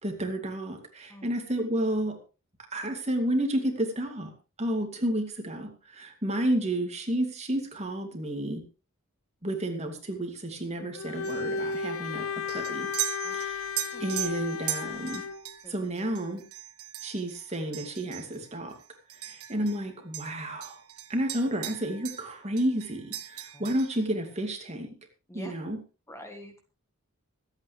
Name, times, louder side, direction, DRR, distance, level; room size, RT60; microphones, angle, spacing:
voice 1, 0.0-2.2 2.7-4.3 4.6-8.6 9.4-12.9 13.3-15.2 15.7-16.4 17.0-18.8 19.2-20.8 21.1-24.9 25.3-25.8, right 1 dB, 30° right, 4 dB, 2.6 m, -31 dB
Bowed string instrument, 10.9-15.4, left 5 dB, 65° left, 0.7 m, -34 dB
sound 1, 11.2-19.9 20.1-22.3 22.6-24.1, right 13 dB, 80° right, 1.7 m, -39 dB
voice 2, 26.1-26.6, equal, 15° left, 5 dB, 1.5 m, -46 dB
24.5 x 9.0 x 3.4 m, 0.32 s
head